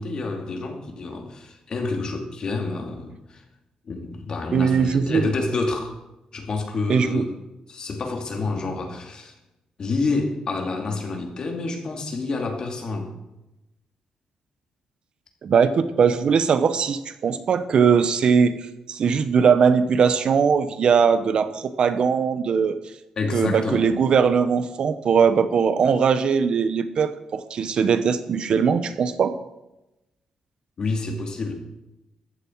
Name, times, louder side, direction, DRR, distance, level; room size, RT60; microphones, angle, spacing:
voice 1, 0.0-3.4 3.8-6.0 6.3-7.3 7.7-9.3 9.8-13.1 23.2-23.9 30.8-31.5, left 3 dB, 40° left, 3 dB, 2.5 m, -28 dB
voice 2, 4.5-5.3 6.9-7.3 15.4-22.8 23.3-29.4, right 6 dB, 50° right, 12 dB, 0.8 m, -20 dB
14.5 x 11.5 x 4.6 m, 0.95 s
wide cardioid pair, 150°, 2 cm